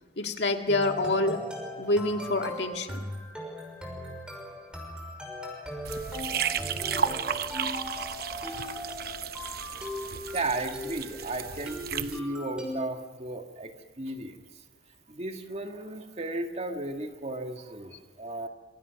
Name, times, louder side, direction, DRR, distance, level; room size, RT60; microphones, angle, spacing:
voice 1, 0.2-1.4 1.8-3.0 7.0-7.1, left 2 dB, 70° left, 4 dB, 2.0 m, -27 dB
sound 1, 0.7-12.8, left 1 dB, 5° right, 6.0 m, -39 dB
sound 2, 5.8-12.2, right 7 dB, 55° right, 0.9 m, -33 dB
voice 2, 10.3-14.4 15.1-18.5, right 2 dB, 40° right, 5 dB, 1.9 m, -35 dB
26.5 x 24.5 x 5.9 m, 1.3 s
head